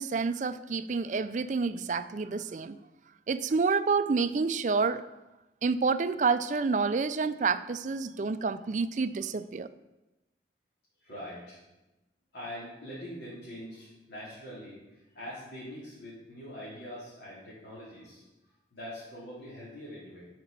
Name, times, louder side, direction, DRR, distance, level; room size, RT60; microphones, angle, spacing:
voice 1, 0.0-2.8 3.3-5.0 5.6-9.7, right 4 dB, 45° right, 12 dB, 0.4 m, -28 dB
voice 2, 11.0-11.6 12.3-18.2 18.7-20.3, equal, 85° left, -10 dB, 3.4 m, -43 dB
8.3 x 6.0 x 6.9 m, 1.0 s
head